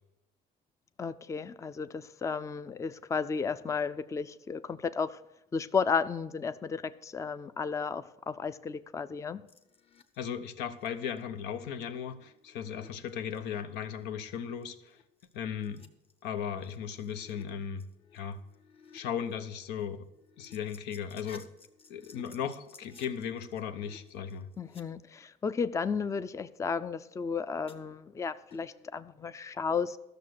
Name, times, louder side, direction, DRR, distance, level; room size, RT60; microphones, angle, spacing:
voice 1, 1.0-5.2 5.5-9.4 24.6-30.0, left 5 dB, 20° left, 0.4 m, -33 dB
sound 1, 9.5-10.2 10.6-10.9 11.2-11.3 11.8-13.6 14.2-14.4 14.6-14.7 15.0-17.5 17.8-19.0 19.3-24.8 27.7-28.2 28.5-29.0, left 5 dB, 35° left, 1.0 m, -57 dB
voice 2, 10.2-15.0 15.3-15.9 16.2-17.9 18.1-18.4 18.9-20.1 20.4-21.5 21.9-24.5, left 8 dB, 90° left, 0.9 m, -37 dB
13.0 x 6.6 x 6.5 m
cardioid pair, 110°, 17 cm